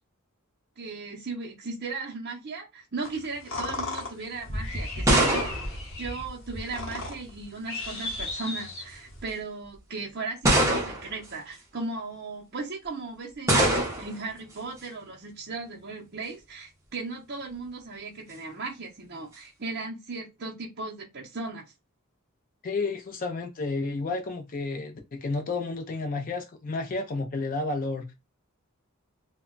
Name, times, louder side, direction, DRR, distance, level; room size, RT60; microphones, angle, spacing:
voice 1, 0.8-5.6 6.0-21.7, right 3 dB, 50° right, 0.6 m, -37 dB
sound 1, 3.0-9.2, left 3 dB, 60° left, 0.9 m, -37 dB
sound 2, 4.5-6.8 7.8-8.3 9.1-9.2 10.4-11.3 13.5-14.2, right 1 dB, 15° right, 0.7 m, -24 dB
voice 2, 22.6-28.1, left 3 dB, 40° left, 0.4 m, -31 dB
2.2 x 2.1 x 3.7 m
head